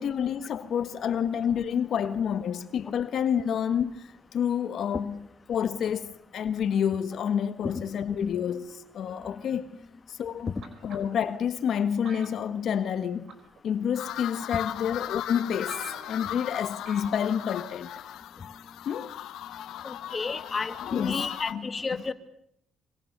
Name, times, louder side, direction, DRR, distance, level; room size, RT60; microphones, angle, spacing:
voice 1, 0.0-9.7 10.1-10.6 10.8-13.3 13.6-18.5 18.8-19.2 19.5-19.9 20.8-22.0, left 8 dB, 65° left, 1.6 m, -29 dB
sound 1, 10.6-11.3 12.0-13.0 13.3-13.6 14.4-14.5 15.1-15.2 15.4-15.5 15.7-16.3 16.9-17.2 17.5-17.6, right 5 dB, 70° right, 4.9 m, -46 dB
sound 2, 14.0-21.5, left 12 dB, 85° left, 1.0 m, -38 dB
voice 2, 19.8-22.1, left 4 dB, 35° left, 2.1 m, -32 dB
25.5 x 25.0 x 6.8 m
cardioid pair, 90°, 0 cm